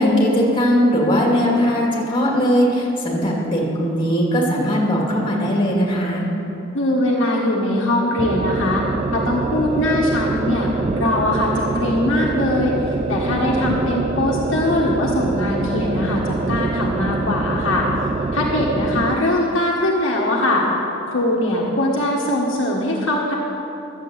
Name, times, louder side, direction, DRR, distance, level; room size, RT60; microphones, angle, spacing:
voice 1, 0.0-6.3, equal, 25° left, -3 dB, 2.7 m, -19 dB
voice 2, 6.7-8.8 9.1-10.7 11.0-12.7 13.1-17.9 18.3-20.7 21.1-23.4, left 1 dB, 65° left, -3 dB, 1.5 m, -21 dB
sound 1, 8.2-19.2, right 3 dB, 30° right, 0.3 m, -25 dB
12.0 x 7.6 x 7.8 m, 3.0 s
head